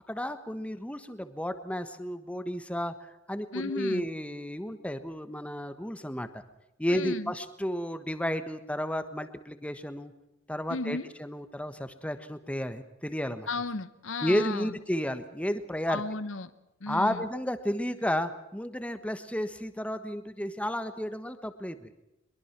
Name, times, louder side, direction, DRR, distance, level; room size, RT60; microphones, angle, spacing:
voice 1, 0.1-2.9 3.3-6.4 6.8-10.1 10.5-13.5 14.2-16.0 16.9-21.9, equal, 5° left, 10 dB, 1.3 m, -32 dB
voice 2, 3.5-4.0 6.9-7.3 10.7-11.1 13.5-14.8 15.9-16.5 16.8-17.3, left 3 dB, 70° left, 13 dB, 1.0 m, -34 dB
23.0 x 22.5 x 6.0 m, 0.93 s
head